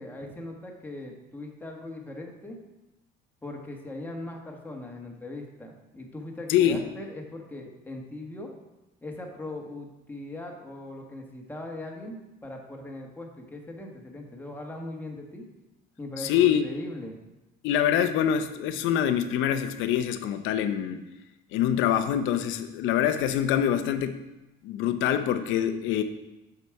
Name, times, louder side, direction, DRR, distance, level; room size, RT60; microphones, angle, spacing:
voice 1, 0.0-2.6 3.4-8.5 9.0-15.5 16.0-17.2, left 1 dB, 10° left, 0 dB, 1.3 m, -40 dB
voice 2, 6.5-6.8 16.2-16.7 17.6-21.0 21.5-24.2 24.6-26.0, left 10 dB, 80° left, 10 dB, 0.6 m, -25 dB
6.9 x 4.9 x 4.7 m, 0.99 s
cardioid pair, 105°, 20 cm